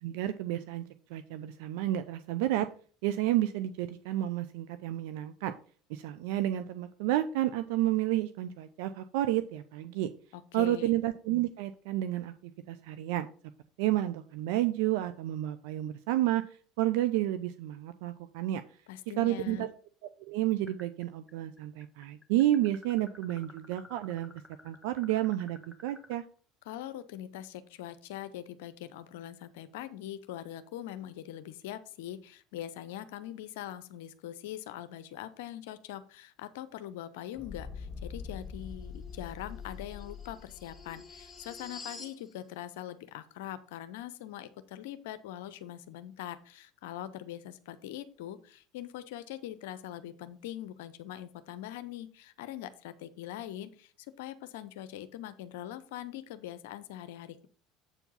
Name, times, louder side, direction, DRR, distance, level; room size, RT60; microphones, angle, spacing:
voice 1, 0.0-2.7 3.0-5.5 5.9-10.1 10.5-13.3 13.8-16.4 16.8-18.6 19.2-19.7 20.2-24.3 24.6-26.2, right 14 dB, 65° right, 11 dB, 0.5 m, -30 dB
voice 2, 10.3-11.0 18.9-19.7 26.7-53.9 54.2-57.5, left 12 dB, 70° left, 13 dB, 0.7 m, -42 dB
sound 1, 20.7-21.3 21.6-26.2, left 1 dB, ahead, 1.7 m, -53 dB
sound 2, 37.3-42.2, left 5 dB, 20° left, 1.7 m, -44 dB
8.0 x 4.6 x 5.5 m, 0.42 s
hypercardioid pair, 70°, 0 cm